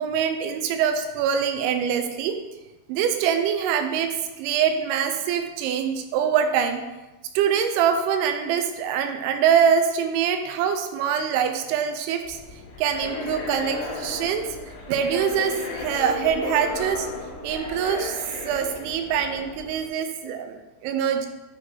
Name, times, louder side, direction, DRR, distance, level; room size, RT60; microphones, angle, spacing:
voice 1, 0.0-2.4 2.9-6.8 7.3-12.4 12.8-14.5 14.9-17.1 17.4-18.2 18.4-21.3, right 8 dB, 85° right, 6 dB, 3.0 m, -24 dB
sound 1, 12.3-19.9, left 3 dB, 80° left, 3.3 m, -34 dB
8.9 x 3.3 x 4.5 m, 1.1 s
omnidirectional pair, 5.3 m